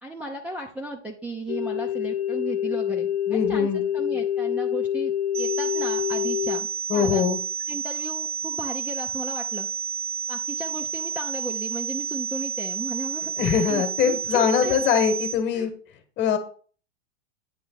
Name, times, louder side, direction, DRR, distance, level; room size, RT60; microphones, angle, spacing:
voice 1, 0.0-7.2 7.7-9.7 10.3-14.8 15.5-15.7, right 2 dB, 5° right, 1 dB, 0.5 m, -35 dB
sound 1, 1.5-6.6, left 10 dB, 55° left, 1.0 m, -26 dB
voice 2, 3.3-3.8 6.9-7.4 13.4-15.7 16.2-16.4, left 7 dB, 30° left, 8 dB, 1.3 m, -22 dB
sound 2, 5.3-15.3, right 6 dB, 90° right, 1.6 m, -31 dB
9.0 x 3.2 x 6.3 m, 0.43 s
supercardioid pair, 140°, 35 cm